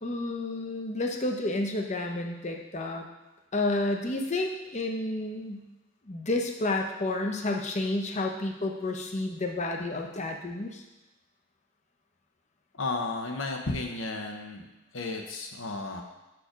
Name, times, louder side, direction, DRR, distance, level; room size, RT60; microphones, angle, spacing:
voice 1, 0.0-3.0 3.5-5.6 6.1-10.8, left 2 dB, 35° left, 2 dB, 0.7 m, -30 dB
voice 2, 12.8-14.6 14.9-16.0, left 3 dB, 70° left, 3 dB, 0.9 m, -33 dB
6.1 x 4.8 x 5.0 m, 1.1 s
head